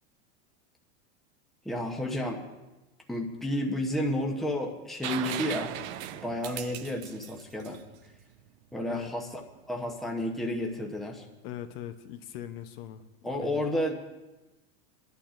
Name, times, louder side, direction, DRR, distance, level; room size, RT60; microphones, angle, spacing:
voice 1, 1.6-2.4 3.1-5.7 6.1-7.8 8.7-9.3 9.7-11.2 13.2-14.0, left 1 dB, ahead, 0 dB, 0.8 m, -31 dB
sound 1, 5.0-8.7 10.6-10.7, right 12 dB, 65° right, 0.7 m, -38 dB
voice 2, 11.4-13.6, left 11 dB, 50° left, 8 dB, 0.8 m, -41 dB
25.5 x 11.5 x 2.5 m, 1.1 s
supercardioid pair, 160°, 37 cm